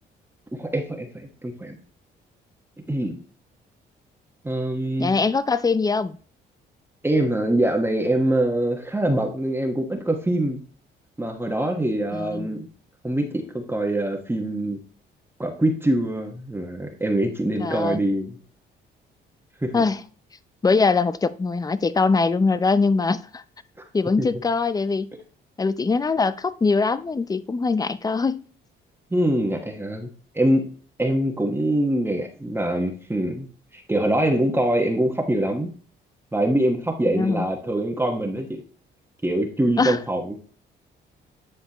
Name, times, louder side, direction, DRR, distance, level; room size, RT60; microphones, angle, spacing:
voice 1, 0.6-1.8 2.9-3.2 4.4-5.1 7.0-10.6 11.2-12.7 13.0-14.8 15.4-18.3 19.6-19.8 24.2-24.3 29.1-30.6 31.0-33.5 33.7-35.7 36.3-38.6 39.2-40.4, right 1 dB, 10° right, 1.3 m, -24 dB
voice 2, 5.0-6.2 12.1-12.6 17.6-18.0 19.7-20.0 20.6-23.4 23.9-25.1 25.6-28.4 37.1-37.4 39.8-40.0, left 4 dB, 20° left, 0.5 m, -22 dB
9.9 x 5.0 x 2.9 m
cardioid pair, 90°, 20 cm